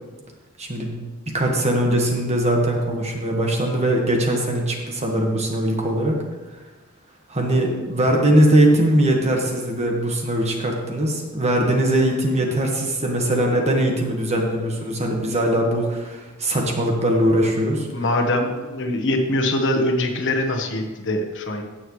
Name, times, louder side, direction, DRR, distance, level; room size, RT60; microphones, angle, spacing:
voice 1, 0.6-0.9 1.3-6.2 7.3-17.9, right 1 dB, 30° right, 1 dB, 1.5 m, -21 dB
voice 2, 17.9-21.6, left 1 dB, 60° left, 3 dB, 1.1 m, -23 dB
16.0 x 6.3 x 3.2 m, 1.3 s
head